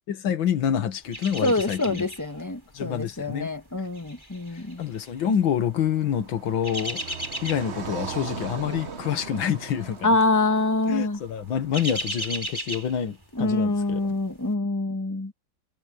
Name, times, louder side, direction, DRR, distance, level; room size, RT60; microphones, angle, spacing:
voice 1, 0.1-2.1 2.7-3.5 4.8-10.1 10.9-14.1, left 8 dB, 80° left, 2.2 m, -27 dB
sound 1, 1.1-2.4 2.7-3.0 3.7-5.4 6.3-7.9 8.2-8.5 8.8-8.9 9.9-10.3 10.6-10.8 11.2-13.5 13.9-14.0, equal, 10° right, 5.2 m, -35 dB
voice 2, 1.4-4.8 10.0-11.2 13.3-15.3, left 2 dB, 10° left, 1.5 m, -25 dB
Car passing by, 4.9-12.1, right 6 dB, 40° right, 1.2 m, -39 dB
omnidirectional pair, 2.1 m